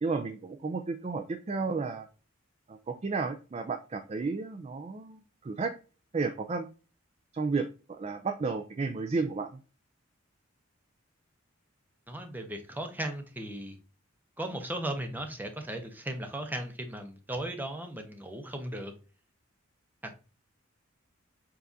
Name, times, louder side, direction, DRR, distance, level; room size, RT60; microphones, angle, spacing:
voice 1, 0.0-2.1 2.7-5.7 6.1-6.7 7.3-7.7 8.0-9.5, right 4 dB, 30° right, 5 dB, 0.4 m, -32 dB
voice 2, 12.1-13.8 14.4-18.9 20.0-20.1, right 1 dB, 10° right, 5 dB, 0.7 m, -36 dB
7.0 x 2.5 x 2.7 m, 0.35 s
head